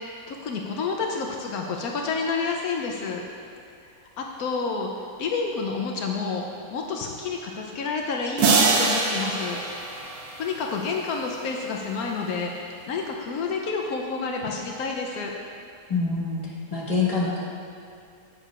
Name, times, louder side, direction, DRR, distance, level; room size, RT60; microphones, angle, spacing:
voice 1, 0.0-3.2 4.0-9.6 10.4-15.3, left 4 dB, 80° left, 1 dB, 1.1 m, -29 dB
sound 1, 8.4-10.9, right 4 dB, 80° right, 1.2 m, -24 dB
voice 2, 15.9-17.4, left 4 dB, 25° left, -5 dB, 1.4 m, -26 dB
11.0 x 8.3 x 2.4 m, 2.4 s
omnidirectional pair, 1.6 m